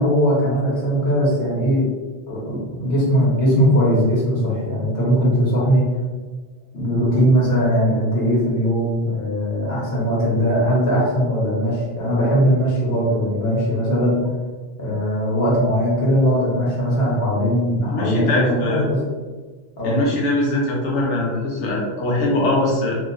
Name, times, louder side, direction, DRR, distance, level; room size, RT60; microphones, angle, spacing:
voice 1, 0.0-1.9 2.3-5.9 6.7-14.3 14.8-19.0 19.8-20.0, equal, 60° left, -6 dB, 1.3 m, -19 dB
voice 2, 17.9-18.8 19.8-23.0, left 2 dB, 80° left, -2 dB, 1.1 m, -22 dB
3.0 x 2.9 x 2.5 m, 1.3 s
omnidirectional pair, 1.2 m